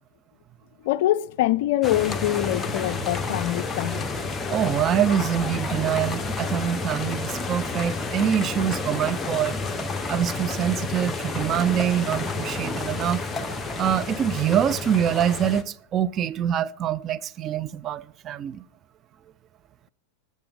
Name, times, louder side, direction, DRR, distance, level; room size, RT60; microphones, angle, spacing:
voice 1, 0.8-4.0, left 14 dB, 50° left, 0.3 m, -24 dB
sound 1, 1.8-15.6, left 3 dB, 15° left, 0.8 m, -30 dB
voice 2, 4.5-9.6 10.1-13.2 13.8-18.6, right 9 dB, 30° right, 0.4 m, -25 dB
19.0 x 6.4 x 3.4 m
figure-of-eight pair, 90°, 0 cm